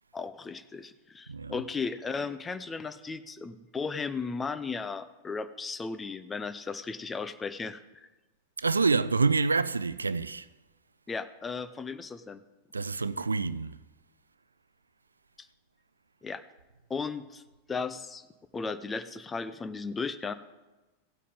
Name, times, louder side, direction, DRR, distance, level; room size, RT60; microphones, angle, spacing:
voice 1, 0.1-8.1 11.1-12.4 16.2-16.4 16.9-17.4 17.7-18.3 18.5-20.3, left 4 dB, 15° left, 0.7 m, -35 dB
voice 2, 8.6-10.5 12.7-13.8, right 4 dB, 75° right, 0.3 m, -27 dB
17.0 x 8.4 x 3.7 m
figure-of-eight pair, 90°, 0 cm